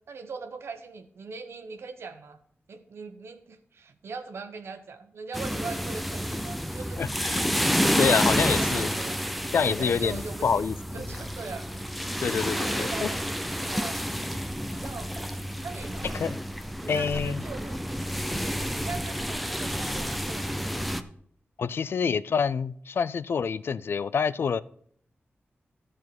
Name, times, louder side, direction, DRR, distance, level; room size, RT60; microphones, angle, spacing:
voice 1, 0.1-2.4 2.7-7.0 7.9-9.2 9.6-10.6 10.9-11.7 12.4-14.0 14.7-15.4 15.6-16.3 16.8-17.8 18.7-20.7, right 4 dB, 80° right, 1.2 m, -41 dB
sound 1, 5.3-21.0, equal, ahead, 0.6 m, -30 dB
voice 2, 7.0-7.4 7.8-8.9 9.5-10.8 12.2-13.1 16.1-16.4 16.9-17.4 21.6-24.6, left 6 dB, 65° left, 0.4 m, -27 dB
13.5 x 4.9 x 7.7 m
wide cardioid pair, 155°, 4 cm